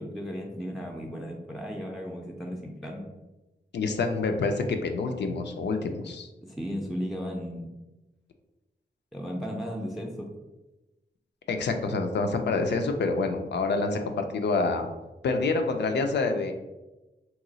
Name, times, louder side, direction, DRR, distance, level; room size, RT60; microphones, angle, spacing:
voice 1, 0.0-3.1 6.4-7.7 9.1-10.3, equal, ahead, 0 dB, 0.4 m, -35 dB
voice 2, 3.7-6.3 11.5-14.9 15.2-16.5, left 3 dB, 85° left, 6 dB, 0.4 m, -27 dB
2.9 x 2.3 x 3.8 m, 1.1 s
wide cardioid pair, 90°, 17 cm